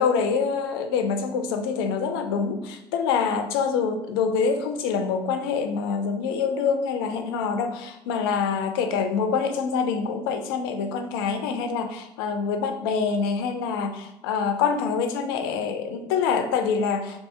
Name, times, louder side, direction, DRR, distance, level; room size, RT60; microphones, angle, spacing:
voice 1, 0.0-17.2, left 5 dB, 80° left, 7 dB, 0.4 m, -25 dB
2.8 x 2.7 x 3.3 m, 0.87 s
hypercardioid pair, 65°, 12 cm